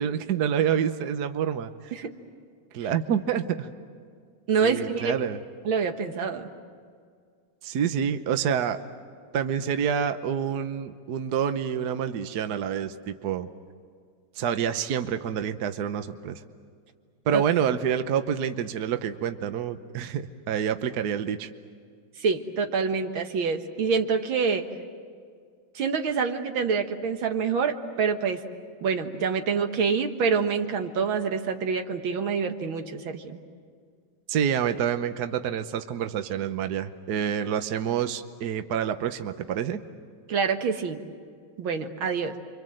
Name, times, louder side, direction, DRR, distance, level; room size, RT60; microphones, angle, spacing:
voice 1, 0.0-1.9 2.7-3.7 4.6-5.4 7.6-8.8 9.3-13.5 14.4-16.4 17.3-21.5 34.3-39.8, right 8 dB, 60° right, 9 dB, 1.3 m, -27 dB
voice 2, 4.5-5.2 5.7-6.5 17.3-17.4 22.2-24.7 25.8-28.4 28.8-33.4 40.3-41.0 41.6-42.3, right 5 dB, 80° right, 6 dB, 2.2 m, -26 dB
29.5 x 24.5 x 7.7 m, 2.1 s
omnidirectional pair, 2.2 m